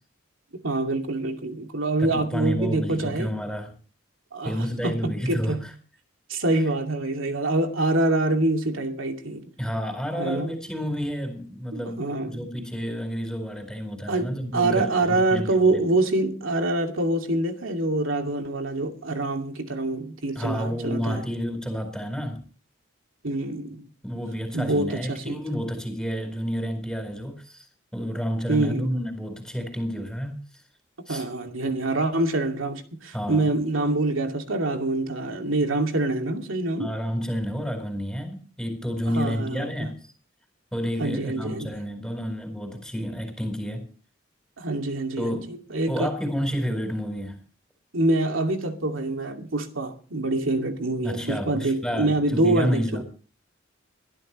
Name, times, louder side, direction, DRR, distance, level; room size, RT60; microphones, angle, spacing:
voice 1, 0.6-3.4 4.3-5.6 6.3-9.5 10.2-10.5 11.7-12.4 14.1-21.2 23.2-23.9 24.5-25.4 28.5-28.9 31.1-36.9 39.1-39.9 41.0-41.7 44.6-46.1 47.9-53.0, right 2 dB, 90° right, 2.5 m, -25 dB
voice 2, 2.0-3.7 4.4-5.7 9.6-15.8 20.3-22.4 24.0-27.6 27.9-30.4 31.1-31.2 33.1-33.6 36.8-40.0 40.7-43.9 45.2-45.6 45.9-47.4 51.0-53.0, equal, 5° left, 4.4 m, -30 dB
22.0 x 13.0 x 3.2 m
head